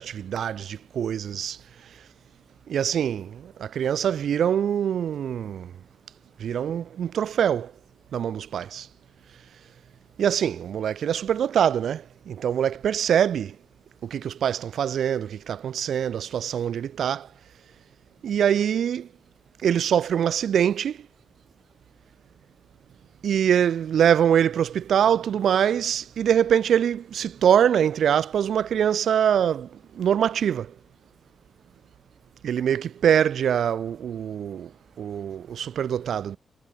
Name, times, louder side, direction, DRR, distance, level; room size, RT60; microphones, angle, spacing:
voice 1, 0.0-1.6 2.7-5.7 6.4-7.7 8.1-8.9 10.2-13.5 14.1-17.3 18.2-19.1 19.6-21.0 23.2-29.7 30.0-30.7 32.4-34.7 35.0-36.4, right 9 dB, 80° right, 5.0 m, -24 dB
wide cardioid pair, 115°, 0 cm